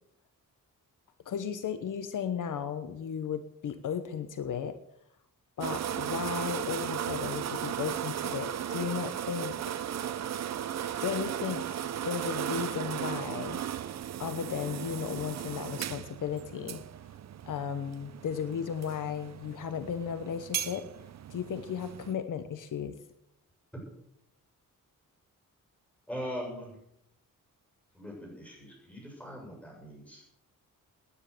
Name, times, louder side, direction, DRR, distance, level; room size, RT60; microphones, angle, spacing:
voice 1, 1.2-4.8 5.6-9.6 11.0-11.7 12.0-13.6 14.2-16.8 17.5-20.9 21.3-23.0, left 7 dB, 70° left, 10 dB, 1.1 m, -35 dB
sound 1, 5.6-22.1, right 10 dB, 55° right, 0.7 m, -36 dB
voice 2, 26.1-26.8 27.9-30.2, equal, 5° left, -2 dB, 7.5 m, -41 dB
18.5 x 9.9 x 6.8 m, 0.75 s
wide cardioid pair, 170°, 33 cm